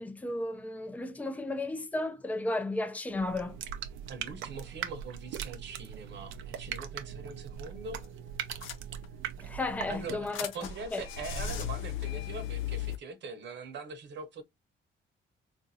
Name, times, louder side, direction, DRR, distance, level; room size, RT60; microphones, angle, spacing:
voice 1, 0.0-3.6 9.4-10.5 10.9-11.0, left 2 dB, 5° left, 0.5 m, -34 dB
sound 1, 3.1-10.4, right 9 dB, 85° right, 0.6 m, -41 dB
voice 2, 4.1-8.0 9.9-14.4, right 4 dB, 65° right, 1.0 m, -42 dB
sound 2, 7.5-7.8 8.0-8.1 8.5-9.3 9.8-13.0, left 8 dB, 90° left, 0.6 m, -37 dB
3.7 x 2.6 x 2.7 m
cardioid pair, 90°, 20 cm